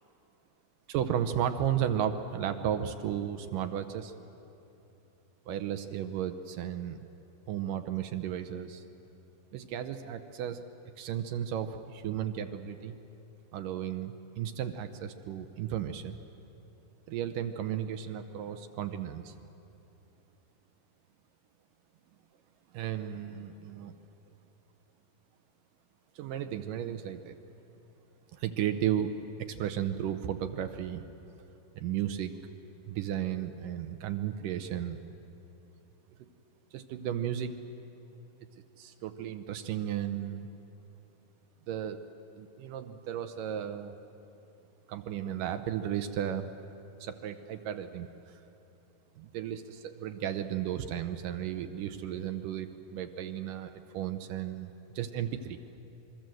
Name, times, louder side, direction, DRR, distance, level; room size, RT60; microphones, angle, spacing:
voice 1, 0.9-4.1 5.5-7.0 7.5-8.8 9.5-10.6 11.0-12.9 13.5-16.2 17.1-19.3 22.7-24.0 26.2-27.4 28.3-29.1 29.5-31.0 31.8-32.3 32.9-35.0 36.7-37.5 38.8-40.5 41.7-42.0 42.4-44.0 44.9-46.5 47.0-48.4 49.2-55.6, right 10 dB, 75° right, 8 dB, 2.2 m, -34 dB
26.0 x 22.5 x 7.7 m, 3.0 s
omnidirectional pair, 4.4 m